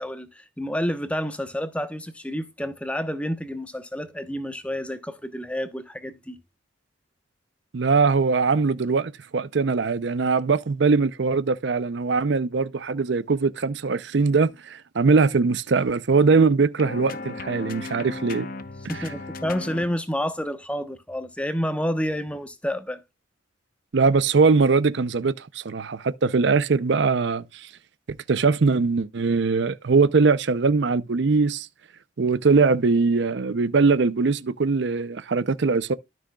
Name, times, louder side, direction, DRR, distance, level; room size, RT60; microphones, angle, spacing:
voice 1, 0.0-6.4 18.9-23.0, equal, 5° left, 0.9 m, -29 dB
voice 2, 7.7-18.5 23.9-27.7 28.3-31.7 32.2-35.9, right 4 dB, 60° right, 0.5 m, -21 dB
sound 1, 16.8-20.0, left 3 dB, 45° left, 0.8 m, -36 dB
12.5 x 6.2 x 2.3 m
head